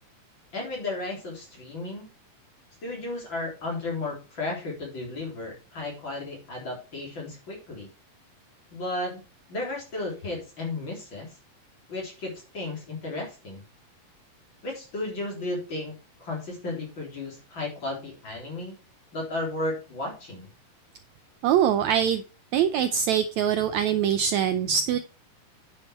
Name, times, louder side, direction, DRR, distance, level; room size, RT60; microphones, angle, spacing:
voice 1, 0.5-2.1 2.8-7.9 8.7-9.2 9.5-11.4 11.9-13.6 14.6-15.9 16.2-18.7 19.1-20.5, left 2 dB, 35° left, -1 dB, 3.9 m, -34 dB
voice 2, 21.4-22.2 22.5-25.0, right 9 dB, 85° right, 10 dB, 1.6 m, -23 dB
9.6 x 6.6 x 4.3 m, 0.32 s
omnidirectional pair, 4.1 m